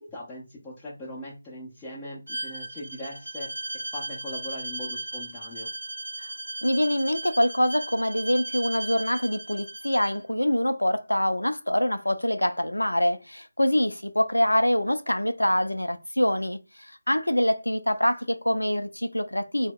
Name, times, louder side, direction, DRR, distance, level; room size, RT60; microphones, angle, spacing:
voice 1, 0.0-3.5 3.9-5.7, left 1 dB, 10° left, 0.5 m, -40 dB
Bowed string instrument, 2.3-10.2, right 2 dB, 70° right, 0.4 m, -36 dB
voice 2, 6.6-16.6 17.1-19.7, left 1 dB, 85° left, 0.4 m, -25 dB
2.1 x 2.0 x 3.5 m
figure-of-eight pair, 160°, 0 cm